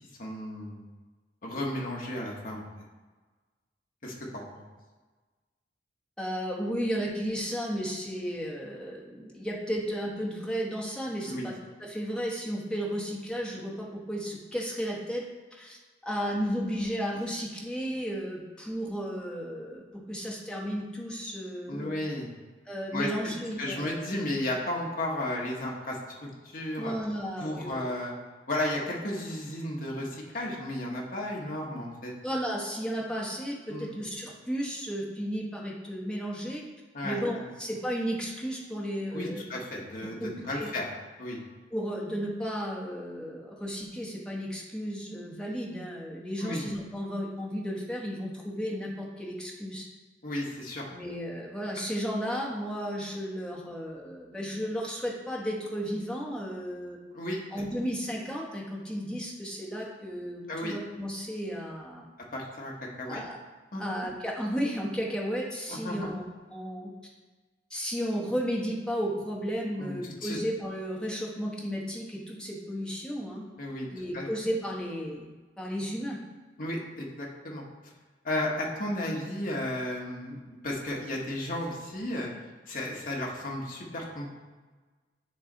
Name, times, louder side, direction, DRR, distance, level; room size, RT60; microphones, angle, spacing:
voice 1, 0.2-0.9 1.4-2.6 4.0-4.4 11.3-11.5 21.7-22.3 22.9-23.1 23.6-26.9 27.4-28.1 28.5-32.1 33.7-33.9 36.9-37.5 39.1-40.9 41.2-41.4 46.4-46.6 50.2-50.8 57.1-57.4 60.5-60.8 62.3-62.7 63.0-63.2 63.7-63.8 65.7-66.1 69.8-70.4 73.6-73.9 74.1-74.3 76.6-77.9 78.2-82.3 82.7-84.3, left 1 dB, 45° left, -2 dB, 1.2 m, -34 dB
voice 2, 6.2-11.5 11.8-15.2 15.6-19.8 20.1-22.0 22.7-24.1 26.8-27.9 32.2-36.6 37.0-39.4 40.0-40.7 41.7-49.9 50.9-57.0 57.5-62.1 63.1-63.4 63.8-66.2 66.5-66.9 67.7-73.4 73.9-75.3 75.6-76.2, equal, 5° left, -4 dB, 1.0 m, -33 dB
9.1 x 3.2 x 3.9 m, 1.3 s
head